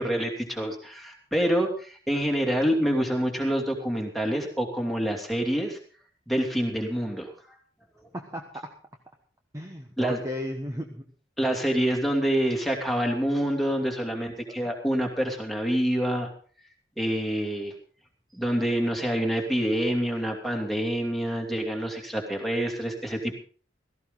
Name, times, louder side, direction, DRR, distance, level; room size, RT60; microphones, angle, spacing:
voice 1, 0.0-5.8 6.3-7.6 10.0-10.2 11.4-16.3 17.0-17.7 18.3-23.4, equal, ahead, 1 dB, 2.6 m, -27 dB
voice 2, 8.1-8.8 9.5-11.1 14.4-14.6, left 1 dB, 15° right, 2 dB, 1.2 m, -35 dB
16.5 x 14.5 x 3.9 m, 0.42 s
head